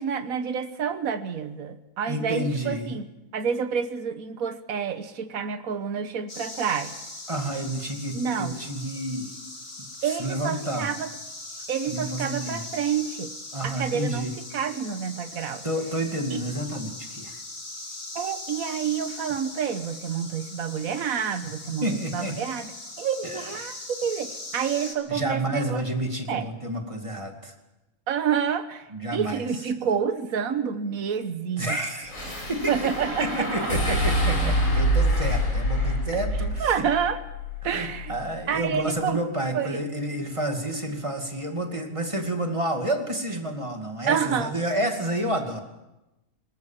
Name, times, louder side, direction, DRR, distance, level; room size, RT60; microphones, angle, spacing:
voice 1, 0.0-3.1 3.3-7.0 8.1-8.6 10.0-11.1 11.7-13.3 13.6-14.2 14.5-15.6 16.3-16.4 18.1-22.7 23.0-25.8 26.3-26.5 28.1-31.8 32.7-34.0 36.6-37.2 37.6-38.1 38.5-39.2 39.5-39.8 44.1-44.5, right 7 dB, 70° right, 10 dB, 1.6 m, -28 dB
voice 2, 2.1-3.0 7.3-9.3 10.0-10.9 11.9-12.6 13.5-14.3 15.6-17.4 21.7-22.4 23.2-23.8 25.1-27.5 28.9-29.5 31.6-32.2 32.5-32.7 33.2-36.8 37.6-45.6, right 1 dB, 20° right, 3 dB, 2.4 m, -30 dB
sound 1, 6.3-25.0, left 2 dB, 40° left, 2.8 m, -40 dB
sound 2, 32.1-38.5, equal, 65° left, 7.4 m, -26 dB
20.5 x 19.5 x 7.3 m, 0.98 s
omnidirectional pair, 1.5 m